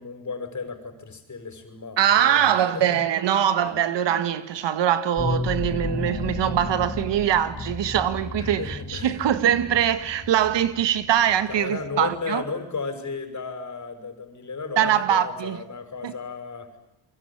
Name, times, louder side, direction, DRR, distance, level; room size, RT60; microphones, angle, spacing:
voice 1, 0.0-2.9 3.6-3.7 8.4-9.2 11.5-16.7, left 4 dB, 40° left, 6.3 m, -34 dB
voice 2, 2.0-12.4 14.8-15.6 16.0-16.1, right 10 dB, 70° right, 1.9 m, -22 dB
sound 1, 5.2-12.2, left 3 dB, 25° left, 3.5 m, -33 dB
29.5 x 23.0 x 8.9 m
cardioid pair, 90°, 44 cm